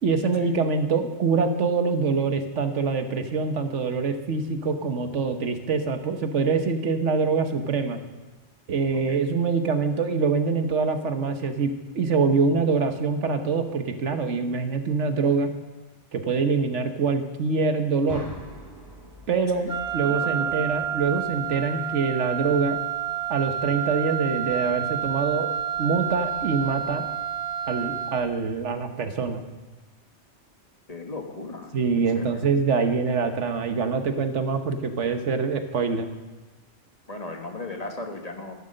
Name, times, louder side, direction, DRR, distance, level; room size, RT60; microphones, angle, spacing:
voice 1, 0.0-8.0 8.7-15.5 16.1-18.3 19.3-22.8 23.3-25.5 25.8-27.1 27.7-29.5 31.7-36.1, right 4 dB, 85° right, 7 dB, 1.4 m, -25 dB
voice 2, 8.9-9.2 19.5-20.6 30.9-31.7 32.1-32.4 37.1-38.6, left 2 dB, 35° left, 4 dB, 1.4 m, -37 dB
sound 1, 18.1-22.0, right 1 dB, 15° left, 5.9 m, -44 dB
Wind instrument woodwind instrument, 19.7-28.4, right 10 dB, 65° right, 1.3 m, -29 dB
14.0 x 11.0 x 6.5 m, 1.2 s
omnidirectional pair, 1.2 m